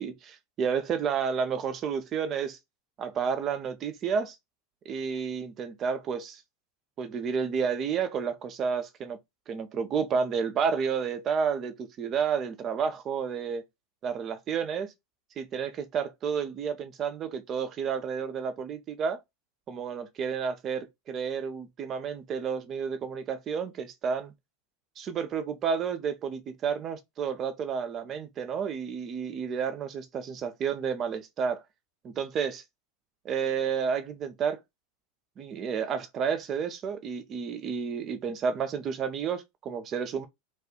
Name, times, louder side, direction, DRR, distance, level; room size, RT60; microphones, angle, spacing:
voice 1, 0.0-2.6 3.0-4.4 4.9-6.4 7.0-9.2 9.5-13.6 14.0-14.9 15.4-19.2 19.7-24.3 25.0-31.6 32.0-32.6 33.2-34.6 35.4-40.3, right 6 dB, 35° right, 0.5 m, -31 dB
2.4 x 2.3 x 3.5 m
figure-of-eight pair, 85°, 0 cm